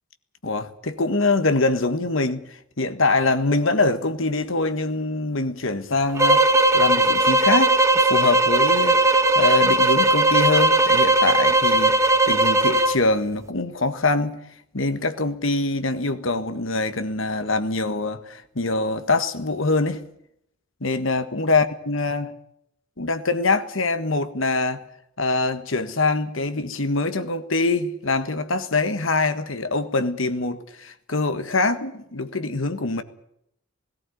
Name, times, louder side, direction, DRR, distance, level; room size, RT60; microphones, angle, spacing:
voice 1, 0.4-6.5 6.7-7.8 8.1-14.4 14.7-20.0 20.8-22.3 23.0-24.8 25.2-33.0, left 3 dB, 65° left, 1.6 m, -24 dB
sound 1, 6.2-13.0, right 2 dB, 15° right, 1.2 m, -18 dB
18.0 x 16.5 x 9.4 m
head